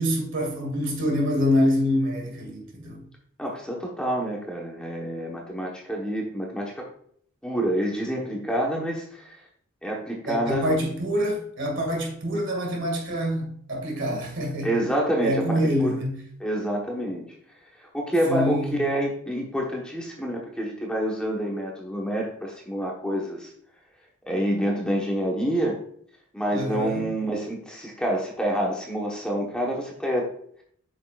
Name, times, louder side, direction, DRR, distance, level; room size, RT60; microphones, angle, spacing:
voice 1, 0.0-3.0 10.3-14.8 15.2-16.2 18.3-18.9 26.5-27.0, equal, 55° right, 2.2 m, -26 dB
voice 2, 3.4-6.9 7.4-9.4 9.8-10.8 14.6-16.0 16.4-17.2 17.8-23.5 24.3-25.8 26.3-30.3, right 1 dB, 5° left, 1.2 m, -27 dB
8.5 x 6.4 x 2.4 m
head